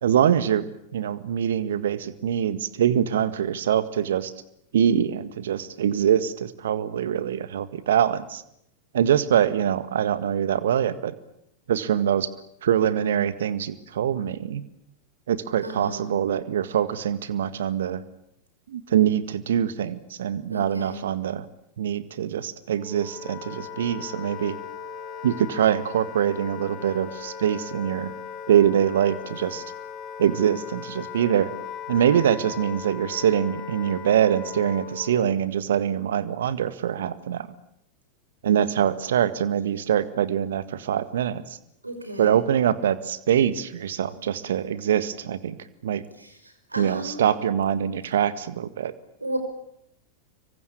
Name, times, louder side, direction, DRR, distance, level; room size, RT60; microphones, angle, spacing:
voice 1, 0.0-4.3 4.7-8.4 8.9-11.1 11.7-12.3 12.6-14.6 15.3-18.0 18.7-21.5 21.8-24.6 25.2-28.1 28.5-29.6 30.2-31.5 31.9-37.5 38.4-41.6 42.2-45.6 45.8-46.0 46.8-48.9, right 9 dB, 60° right, 14 dB, 1.7 m, -24 dB
voice 2, 15.6-16.1 20.5-21.0 41.8-42.4 46.2-46.4 46.7-47.2 49.2-49.4, right 1 dB, 80° right, 7 dB, 5.7 m, -33 dB
Wind instrument woodwind instrument, 22.7-35.4, left 7 dB, 30° left, 4.7 m, -38 dB
26.5 x 23.5 x 8.7 m, 0.75 s
figure-of-eight pair, 90°, 0 cm